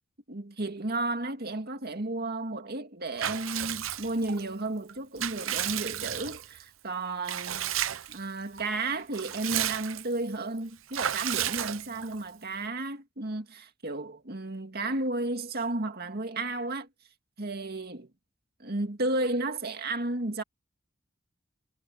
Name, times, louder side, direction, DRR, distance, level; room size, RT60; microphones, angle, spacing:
voice 1, 0.3-7.7 8.1-16.9 17.4-18.1 18.6-20.4, right 2 dB, 50° right, 2.2 m, -33 dB
Water / Bathtub (filling or washing) / Liquid, 3.2-4.4 4.9-6.6 7.3-8.2 8.6-8.7 9.0-10.2 10.9-12.2, right 11 dB, 85° right, 0.8 m, -33 dB
head